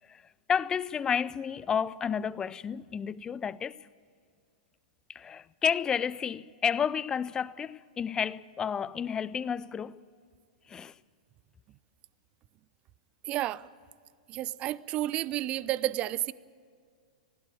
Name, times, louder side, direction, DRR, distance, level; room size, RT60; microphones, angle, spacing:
voice 1, 0.5-3.9 5.1-10.0 10.7-10.9, left 7 dB, 20° left, 0.5 m, -31 dB
voice 2, 13.2-13.7 14.3-16.3, right 14 dB, 30° right, 0.6 m, -31 dB
19.5 x 16.0 x 9.0 m
figure-of-eight pair, 105°, 4 cm